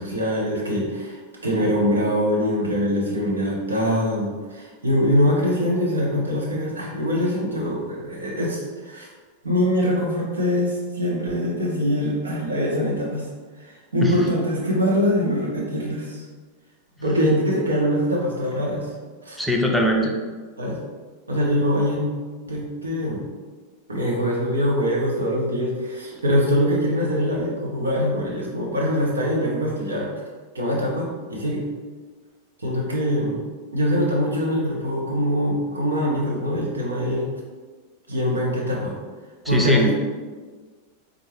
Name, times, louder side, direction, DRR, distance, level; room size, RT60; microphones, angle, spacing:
voice 1, 0.0-9.1 9.4-13.3 13.6-16.2 17.0-18.9 19.2-19.4 20.6-20.8 21.3-22.1 22.4-23.2 23.9-30.1 30.5-31.6 32.6-33.4 33.7-37.3 38.1-38.9 39.5-39.9, equal, 75° right, -3 dB, 0.8 m, -23 dB
voice 2, 19.4-20.1 39.4-39.9, left 1 dB, ahead, 0 dB, 0.5 m, -21 dB
4.3 x 2.0 x 3.1 m, 1.4 s
figure-of-eight pair, 90°, 0 cm